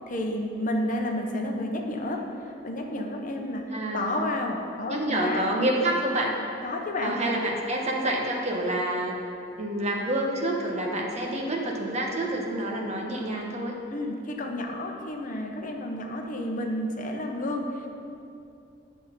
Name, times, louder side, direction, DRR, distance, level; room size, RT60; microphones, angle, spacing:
voice 1, 0.1-3.6 3.9-5.4 6.6-7.2 13.9-17.9, left 1 dB, 45° left, 2 dB, 0.9 m, -31 dB
voice 2, 1.2-1.7 3.7-4.1 4.9-6.3 7.0-9.1 9.6-13.8, right 1 dB, 35° right, -1 dB, 1.3 m, -28 dB
10.5 x 6.3 x 5.3 m, 2.7 s
head